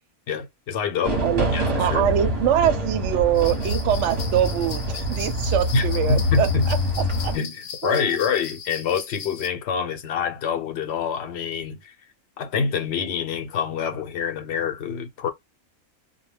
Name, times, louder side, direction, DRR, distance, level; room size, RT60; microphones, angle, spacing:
voice 1, 0.3-1.3 1.5-2.1 5.7-6.7 7.3-11.9 12.4-15.3, left 6 dB, 60° left, 0.8 m, -26 dB
sound 1, 1.0-7.4, left 1 dB, 35° right, 0.8 m, -25 dB
voice 2, 1.8-6.8 7.2-7.3 7.8-8.2, right 10 dB, 65° right, 0.8 m, -23 dB
sound 2, 3.3-9.5, left 7 dB, 80° left, 1.1 m, -38 dB
2.2 x 2.1 x 3.2 m
omnidirectional pair, 1.4 m